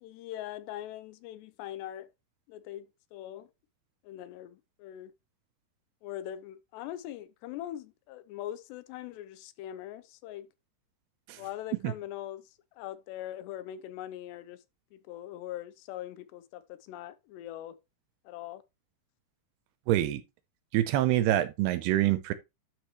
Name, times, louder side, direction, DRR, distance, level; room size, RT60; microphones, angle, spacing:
voice 1, 0.0-2.1 2.5-3.5 4.0-5.1 6.0-10.5 11.4-14.6 14.9-17.8 18.3-18.6, left 12 dB, 85° left, 2.8 m, -42 dB
voice 2, 19.9-20.2 20.7-22.3, right 13 dB, 80° right, 2.6 m, -26 dB
12.0 x 5.3 x 3.0 m
omnidirectional pair, 5.0 m